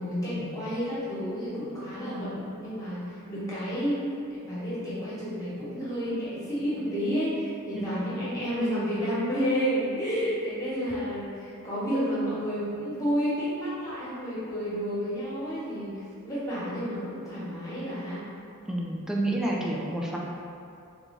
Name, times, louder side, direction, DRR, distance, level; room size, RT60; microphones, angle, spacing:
voice 1, 0.0-18.2, equal, 15° left, -10 dB, 1.1 m, -30 dB
voice 2, 18.7-20.2, right 1 dB, ahead, -3 dB, 0.3 m, -29 dB
3.4 x 2.6 x 3.2 m, 2.5 s
head